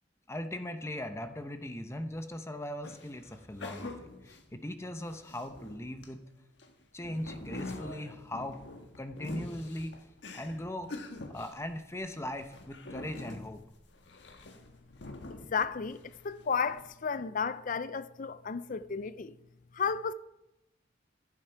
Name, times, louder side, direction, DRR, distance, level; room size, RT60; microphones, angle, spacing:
voice 1, 0.3-6.2 6.9-8.6 9.0-10.1 10.3-10.9 11.3-13.6, left 1 dB, 15° left, 0.8 m, -39 dB
sound 1, 2.8-6.1 6.6-16.2 16.6-16.9, left 2 dB, 70° left, 1.5 m, -45 dB
voice 2, 15.5-19.4 19.7-20.1, left 5 dB, 45° left, 0.5 m, -33 dB
15.0 x 11.0 x 4.6 m
head